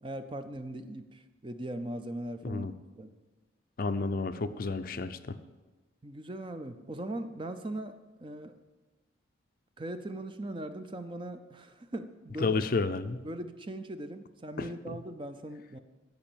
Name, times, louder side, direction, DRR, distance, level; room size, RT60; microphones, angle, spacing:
voice 1, 0.0-2.7 3.0-3.1 6.0-8.6 9.8-12.6 13.2-15.8, right 1 dB, 25° right, 9 dB, 0.5 m, -39 dB
voice 2, 3.8-5.4 12.4-13.2, left 3 dB, 45° left, 11 dB, 0.5 m, -31 dB
11.5 x 5.3 x 8.6 m, 1.2 s
head